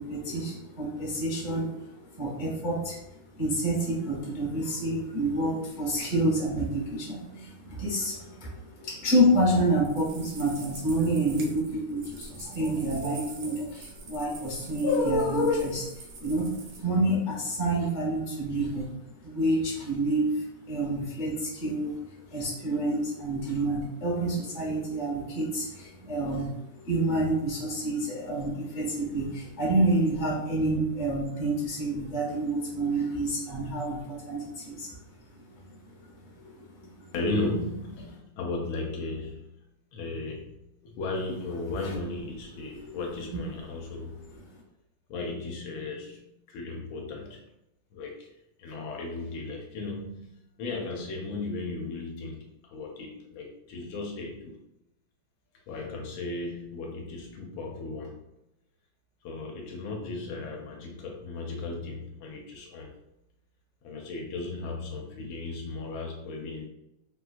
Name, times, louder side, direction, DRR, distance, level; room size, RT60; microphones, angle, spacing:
voice 1, 0.0-18.9 19.2-22.0 22.3-34.9 35.6-35.8 36.1-37.1 41.7-41.9 42.7-43.0 43.3-43.4 44.3-44.4, right 1 dB, 30° left, -4 dB, 0.8 m, -28 dB
sound 1, 9.6-16.8, right 4 dB, 85° right, 1.6 m, -46 dB
voice 2, 37.1-39.5 39.9-44.2 45.1-47.4 47.9-48.3 48.6-54.5 55.7-58.2 59.2-62.9 63.8-66.7, left 2 dB, 80° left, 1 dB, 1.3 m, -35 dB
3.9 x 2.3 x 2.4 m, 0.88 s
omnidirectional pair, 2.3 m